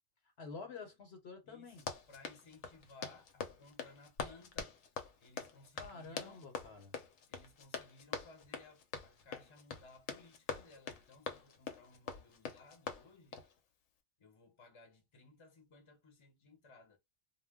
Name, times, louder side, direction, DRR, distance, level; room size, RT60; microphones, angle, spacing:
voice 1, 0.4-1.8 5.8-6.9, left 4 dB, 60° left, 1.0 m, -49 dB
voice 2, 1.4-4.8 5.2-6.5 7.3-13.4 14.2-17.0, left 3 dB, 30° left, 0.7 m, -60 dB
Run, 1.7-13.5, left 5 dB, 85° left, 0.9 m, -45 dB
2.2 x 2.1 x 3.4 m
omnidirectional pair, 1.3 m